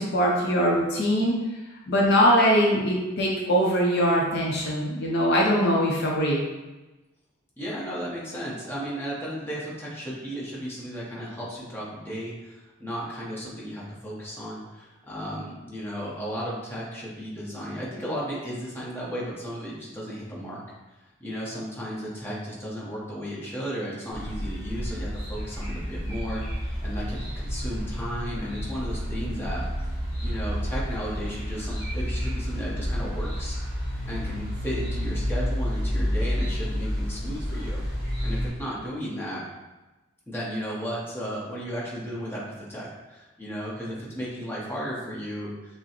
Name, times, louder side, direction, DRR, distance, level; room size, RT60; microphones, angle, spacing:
voice 1, 0.0-1.4 1.9-6.4, equal, 55° left, -2 dB, 0.6 m, -22 dB
voice 2, 7.6-20.6 21.2-29.6 30.2-33.6 34.0-37.8 38.2-39.4 40.3-45.8, equal, 10° left, -6 dB, 0.9 m, -34 dB
sound 1, 24.1-38.5, equal, 30° left, 1.4 m, -30 dB
6.0 x 2.1 x 2.9 m, 1.1 s
head